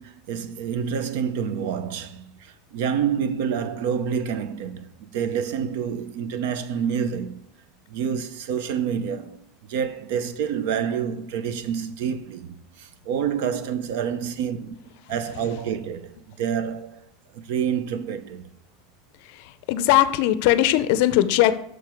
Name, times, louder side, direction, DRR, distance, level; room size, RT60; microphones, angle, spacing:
voice 1, 0.0-7.4 7.9-14.8 15.1-17.0 17.3-18.5, right 7 dB, 60° right, 0.6 m, -28 dB
voice 2, 19.7-21.6, left 13 dB, 50° left, 0.5 m, -19 dB
6.6 x 6.3 x 4.5 m
supercardioid pair, 175°, 0 cm